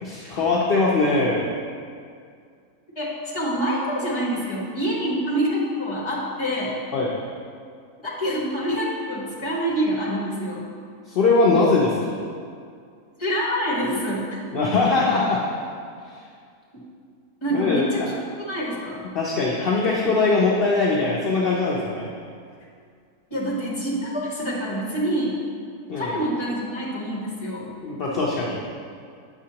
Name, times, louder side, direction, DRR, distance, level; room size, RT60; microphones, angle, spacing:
voice 1, 0.0-1.4 6.9-7.1 11.1-12.1 14.5-15.4 16.1-16.2 17.5-17.9 19.1-22.1 25.9-26.1 27.8-28.6, left 3 dB, 55° left, -4 dB, 0.6 m, -21 dB
voice 2, 2.9-6.8 8.0-10.6 13.2-14.4 17.4-19.0 23.3-25.4 25.9-27.7, equal, 20° left, -5 dB, 1.2 m, -26 dB
8.0 x 6.1 x 2.9 m, 2.2 s
omnidirectional pair, 1.6 m